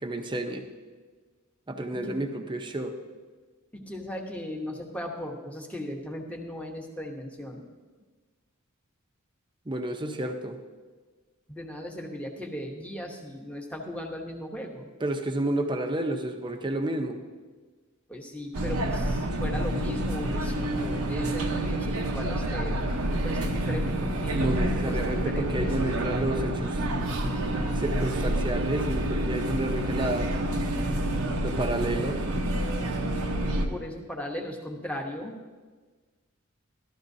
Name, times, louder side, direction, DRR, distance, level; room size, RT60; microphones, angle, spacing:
voice 1, 0.0-0.6 1.7-3.0 9.7-10.6 15.0-17.2 24.4-26.8 27.8-30.5 31.4-32.2, right 1 dB, 20° right, 6 dB, 0.7 m, -30 dB
voice 2, 3.7-7.6 11.5-14.9 18.1-22.8 23.2-25.7 33.7-35.4, equal, 5° left, 0 dB, 1.1 m, -37 dB
sound 1, 18.5-33.7, right 1 dB, 90° right, 1.0 m, -28 dB
13.0 x 13.0 x 2.7 m, 1.4 s
head